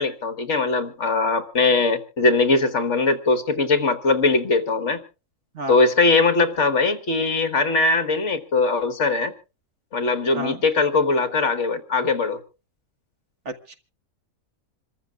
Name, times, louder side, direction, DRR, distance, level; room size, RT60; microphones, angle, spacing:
voice 1, 0.0-5.0 5.7-9.3 9.9-12.4, left 3 dB, 55° left, 11 dB, 1.7 m, -21 dB
voice 2, 13.5-13.8, right 2 dB, 55° right, 7 dB, 1.9 m, -31 dB
27.0 x 14.0 x 2.4 m, 0.34 s
omnidirectional pair, 1.5 m